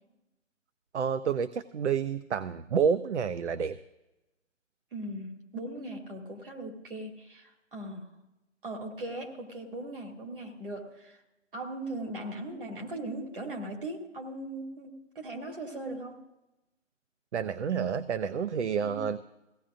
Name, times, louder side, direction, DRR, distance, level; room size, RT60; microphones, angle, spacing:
voice 1, 0.9-3.7 17.3-19.2, right 7 dB, 60° right, 13 dB, 0.6 m, -29 dB
voice 2, 4.9-8.1 8.6-11.2 11.5-16.2 18.8-19.0, right 1 dB, 45° right, 0 dB, 2.5 m, -39 dB
20.5 x 16.5 x 2.5 m, 0.97 s
hypercardioid pair, 175°, 38 cm